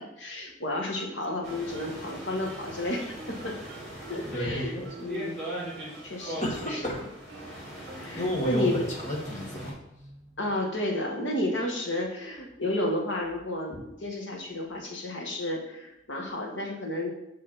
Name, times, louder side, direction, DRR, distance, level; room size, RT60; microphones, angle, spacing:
voice 1, 0.0-3.6 4.1-5.4 6.0-6.5 7.9-8.9 10.4-17.1, left 1 dB, 90° left, 1 dB, 1.7 m, -32 dB
Guitar, 0.9-8.7, right 4 dB, 70° right, 0.6 m, -49 dB
sound 1, 1.4-9.7, right 1 dB, 5° left, 2.6 m, -40 dB
voice 2, 4.3-4.9 6.4-7.1 8.2-10.2, equal, 40° left, -1 dB, 1.8 m, -32 dB
6.3 x 5.9 x 4.2 m, 0.88 s
head